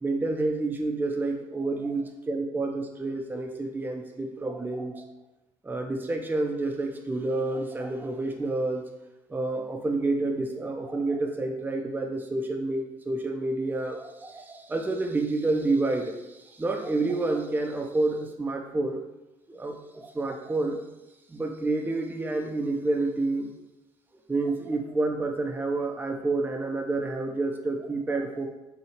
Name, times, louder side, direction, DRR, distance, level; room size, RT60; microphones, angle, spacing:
voice 1, 0.0-5.1 5.6-8.8 9.3-19.0 19.5-20.8 21.3-23.5 24.3-28.5, right 2 dB, 15° right, 2 dB, 0.5 m, -29 dB
4.4 x 2.7 x 2.8 m, 1.0 s
hypercardioid pair, 55°, 14 cm